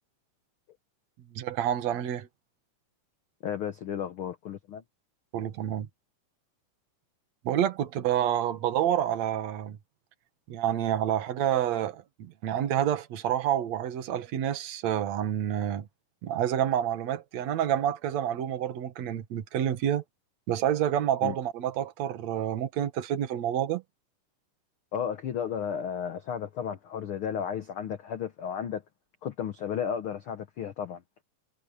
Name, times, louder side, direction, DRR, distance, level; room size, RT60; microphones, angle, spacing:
voice 1, 1.3-2.3 5.3-5.9 7.4-9.8 10.5-15.9 16.2-20.0 20.5-23.8, right 10 dB, 60° right, 2.6 m, -28 dB
voice 2, 3.4-4.8 21.2-21.3 24.9-28.8 29.2-31.0, left 8 dB, 85° left, 1.1 m, -33 dB
omnidirectional pair, 3.9 m